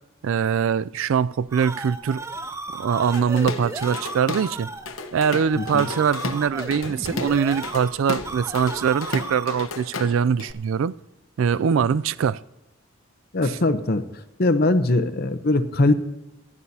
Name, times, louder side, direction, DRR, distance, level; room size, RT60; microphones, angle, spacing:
voice 1, 0.2-2.2 2.7-4.7 5.1-10.9 11.4-12.4 13.4-13.6, right 7 dB, 65° right, 0.3 m, -23 dB
sound 1, 1.5-9.7, right 2 dB, 15° right, 0.6 m, -35 dB
Drum kit / Drum, 3.1-4.5 4.9-10.5, left 3 dB, 70° left, 1.0 m, -33 dB
voice 2, 5.6-5.9 13.3-14.0 14.4-15.9, left 2 dB, 45° left, 0.8 m, -21 dB
24.5 x 11.0 x 2.8 m
head